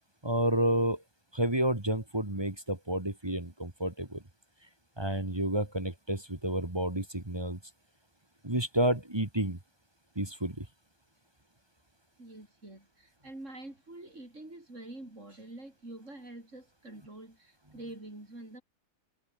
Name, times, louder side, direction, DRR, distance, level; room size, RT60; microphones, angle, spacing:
voice 1, 0.2-1.0 1.3-4.2 5.0-7.6 8.4-9.6 10.2-10.6, right 1 dB, 15° right, 2.1 m, -30 dB
voice 2, 12.2-18.6, right 2 dB, 50° right, 6.6 m, -46 dB
omnidirectional pair, 1.7 m